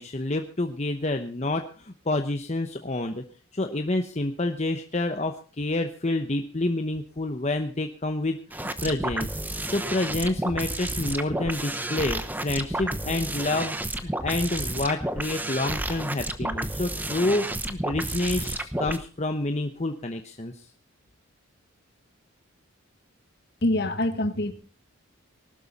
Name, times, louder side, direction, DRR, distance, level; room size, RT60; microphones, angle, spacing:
voice 1, 0.0-3.2 3.5-9.4 9.7-20.7, left 2 dB, 30° left, 5 dB, 0.9 m, -28 dB
sound 1, 8.5-19.0, right 1 dB, 10° right, 0.9 m, -31 dB
voice 2, 23.6-24.5, left 1 dB, 50° left, 9 dB, 1.7 m, -25 dB
19.5 x 12.5 x 4.2 m, 0.36 s
head